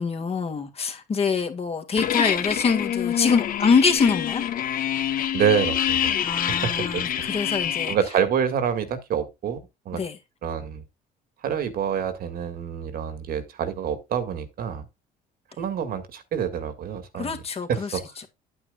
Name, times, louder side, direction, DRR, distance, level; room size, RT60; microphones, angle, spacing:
voice 1, 0.0-4.4 6.2-7.9 9.9-10.2 17.1-18.3, left 5 dB, 35° left, 1.9 m, -24 dB
sound 1, 2.0-8.0, left 10 dB, 55° left, 1.2 m, -26 dB
voice 2, 5.3-6.1 6.5-7.1 7.9-10.0 10.4-10.8 11.4-14.9 15.6-17.4 17.7-18.2, right 8 dB, 60° right, 1.9 m, -27 dB
9.9 x 9.0 x 2.4 m
cardioid pair, 110°, 17 cm